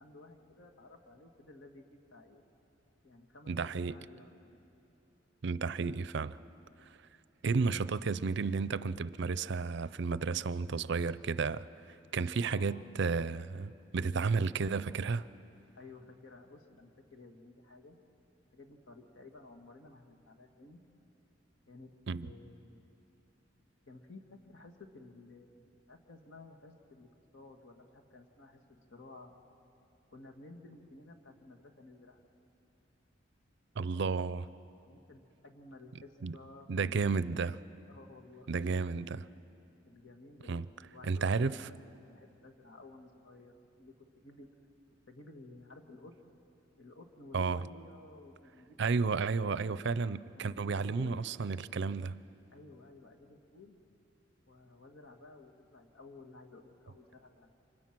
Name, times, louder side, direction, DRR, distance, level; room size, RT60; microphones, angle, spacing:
voice 1, 0.0-2.4 3.0-4.6 7.6-7.8 12.4-13.0 15.8-18.0 18.5-20.8 21.7-21.9 22.2-22.9 23.9-29.3 30.1-32.2 34.9-37.2 37.9-38.5 39.8-40.6 40.9-44.5 45.1-46.1 46.8-48.8 49.2-49.8 50.4-51.3 52.5-53.8 54.5-57.6, left 2 dB, 75° left, 2.0 m, -54 dB
voice 2, 3.5-3.9 5.4-6.4 7.4-11.7 12.1-15.3 22.1-22.3 33.8-34.5 36.2-36.4 36.7-37.6 38.5-39.3 40.5-40.7 41.0-41.7 47.3-47.6 48.8-52.2, right 4 dB, 65° right, 0.5 m, -32 dB
29.0 x 25.5 x 6.1 m
head